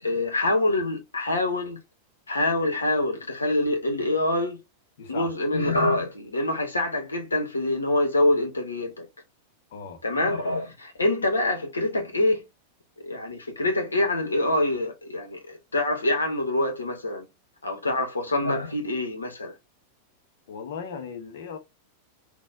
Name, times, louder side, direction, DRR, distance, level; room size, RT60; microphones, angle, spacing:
voice 1, 0.0-1.8 2.3-4.6 5.1-9.1 10.0-12.4 13.0-17.3 17.6-19.5, left 2 dB, 75° left, 1.3 m, -25 dB
voice 2, 5.0-5.3 9.7-10.0 17.9-18.0 20.5-21.6, left 6 dB, 55° left, 1.2 m, -37 dB
4.2 x 2.7 x 3.8 m
figure-of-eight pair, 90°, 0 cm